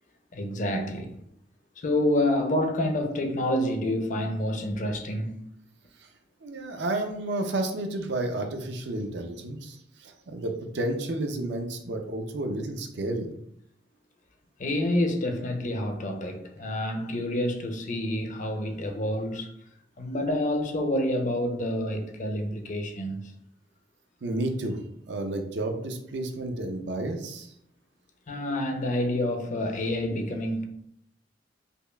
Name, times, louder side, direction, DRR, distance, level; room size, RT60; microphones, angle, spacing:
voice 1, 0.3-1.2 1.8-5.4 14.6-19.5 20.0-23.3 28.3-30.7, left 1 dB, 45° left, 0.5 m, -28 dB
voice 2, 6.4-13.3 24.2-24.8 25.1-27.5, right 2 dB, 65° right, 0.5 m, -31 dB
5.2 x 2.3 x 2.2 m
head